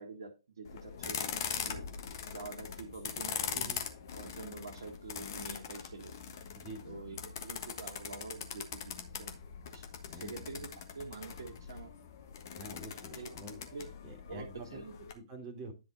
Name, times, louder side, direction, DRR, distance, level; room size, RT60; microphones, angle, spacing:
voice 1, 0.0-1.8 2.3-3.7 4.1-6.1 6.8-9.4 9.7-9.8 10.2-11.9 13.1-13.3 13.7-13.9 14.3-15.0, right 3 dB, 55° right, 2 dB, 1.7 m, -46 dB
sound 1, 0.6-15.1, left 7 dB, 45° left, 1.4 m, -42 dB
voice 2, 3.5-3.8 6.5-7.0 10.0-10.4 12.5-13.7 14.0-14.7 15.1-15.7, right 2 dB, 25° right, 3 dB, 2.1 m, -47 dB
10.5 x 4.4 x 4.0 m, 0.29 s
figure-of-eight pair, 125°, 3 cm